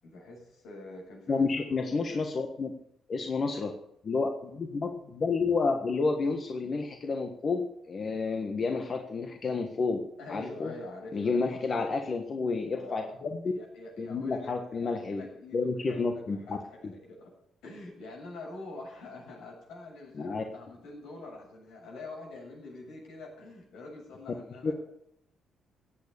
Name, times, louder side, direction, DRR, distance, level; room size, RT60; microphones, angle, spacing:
voice 1, 0.0-1.4 1.7-2.2 10.2-11.5 12.8-13.1 13.5-16.6 16.9-17.3 17.6-24.7, left 2 dB, 85° left, -1 dB, 7.7 m, -45 dB
voice 2, 1.3-2.7 3.1-3.7 4.0-10.0 10.3-10.7 11.1-13.4 14.0-15.2 15.5-16.6 20.2-20.4 24.6-24.7, left 4 dB, 45° left, 3 dB, 1.5 m, -30 dB
15.0 x 8.7 x 7.0 m, 0.75 s
cardioid pair, 90°, 0 cm